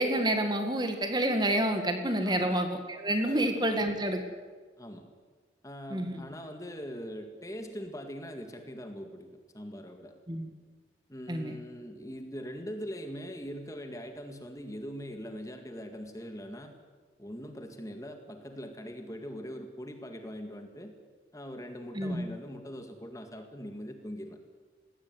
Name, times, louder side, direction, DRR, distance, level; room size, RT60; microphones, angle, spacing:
voice 1, 0.0-4.2 5.9-6.3 10.3-10.5 11.3-11.6 21.9-22.3, right 1 dB, 25° right, 6 dB, 2.0 m, -28 dB
voice 2, 3.2-3.9 4.8-5.1 5.6-9.3 9.5-10.1 11.1-16.7 17.2-20.9 21.3-24.4, equal, 20° left, 5 dB, 1.9 m, -42 dB
20.5 x 16.5 x 9.4 m, 1.5 s
head